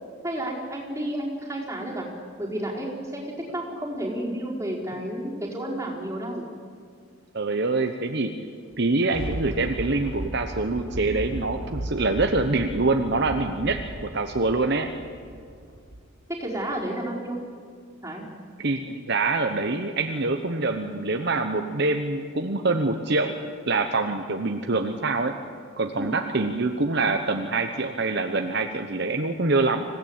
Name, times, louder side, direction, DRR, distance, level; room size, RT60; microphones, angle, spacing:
voice 1, 0.2-2.1 2.4-3.2 3.5-6.4 16.3-17.4 18.0-18.2 26.0-26.1, right 1 dB, 15° right, -4 dB, 4.5 m, -31 dB
voice 2, 7.3-8.3 8.8-14.9 18.6-23.4 23.6-25.4 25.8-29.8, right 3 dB, 50° right, 5 dB, 1.1 m, -25 dB
Thunder, 8.7-16.2 16.7-16.8, right 1 dB, 70° right, 1.3 m, -36 dB
26.0 x 16.5 x 8.8 m, 2.2 s
head